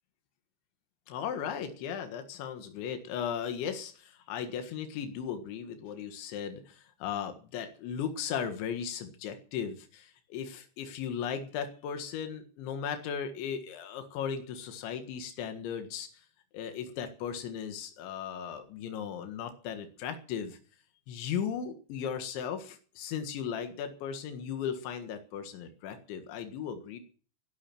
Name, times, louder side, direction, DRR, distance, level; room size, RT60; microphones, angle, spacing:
voice 1, 1.1-16.1 16.5-20.6 21.1-27.0, left 8 dB, 90° left, 7 dB, 4.0 m, -37 dB
19.0 x 12.0 x 6.1 m, 0.41 s
omnidirectional pair, 5.2 m